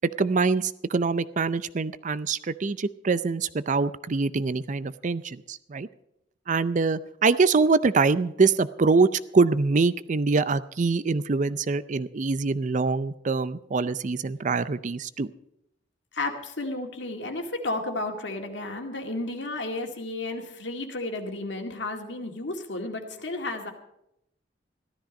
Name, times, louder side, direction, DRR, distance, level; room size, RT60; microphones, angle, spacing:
voice 1, 0.2-5.9 6.5-15.3, right 4 dB, 40° right, 15 dB, 0.5 m, -24 dB
voice 2, 16.1-23.7, left 2 dB, 75° left, 4 dB, 2.1 m, -32 dB
14.5 x 13.0 x 5.3 m, 0.80 s
head